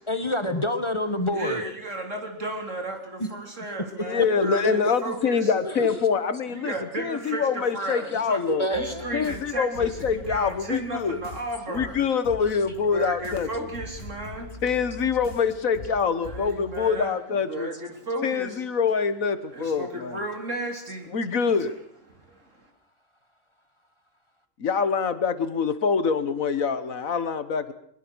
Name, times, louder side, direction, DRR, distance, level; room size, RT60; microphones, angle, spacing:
voice 1, 0.1-1.6 8.5-9.3, left 1 dB, 20° left, 9 dB, 1.5 m, -27 dB
voice 2, 1.3-5.5 6.5-8.4 8.7-12.0 12.9-14.6 16.3-17.2 17.5-18.6 19.5-21.2 22.1-22.7, right 2 dB, 65° right, 4 dB, 3.9 m, -34 dB
voice 3, 4.0-8.7 9.1-11.2 11.7-13.5 14.6-17.7 18.2-20.2 21.1-21.8 24.6-27.7, left 6 dB, 85° left, 12 dB, 1.8 m, -25 dB
sound 1, 8.7-16.9, left 1 dB, 60° left, 7.5 m, -42 dB
22.0 x 21.0 x 6.3 m, 0.68 s
omnidirectional pair, 1.4 m